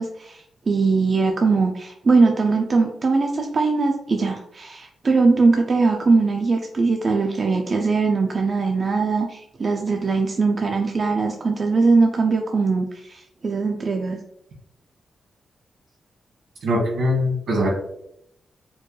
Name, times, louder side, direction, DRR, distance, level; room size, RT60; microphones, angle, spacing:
voice 1, 0.0-14.2, right 4 dB, 35° right, 2 dB, 0.3 m, -21 dB
voice 2, 16.6-17.7, left 1 dB, 70° right, -2 dB, 1.4 m, -21 dB
4.4 x 2.3 x 3.1 m, 0.76 s
wide cardioid pair, 160°, 0 cm